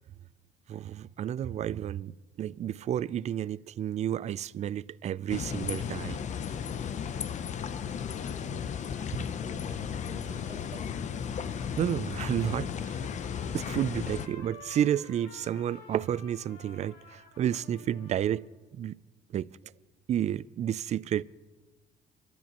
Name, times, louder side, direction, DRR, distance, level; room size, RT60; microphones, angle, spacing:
voice 1, 0.7-6.2 10.7-10.8 11.7-13.0 13.5-18.5 18.7-19.0 19.3-19.5 20.1-21.2, right 10 dB, 40° right, 0.4 m, -31 dB
sound 1, 5.3-14.3, left 7 dB, 45° left, 0.7 m, -35 dB
voice 2, 8.0-10.9, right 1 dB, 25° right, 2.9 m, -50 dB
Trumpet, 11.4-18.5, left 4 dB, 80° left, 2.2 m, -52 dB
28.0 x 13.0 x 3.0 m
cardioid pair, 110°, 17 cm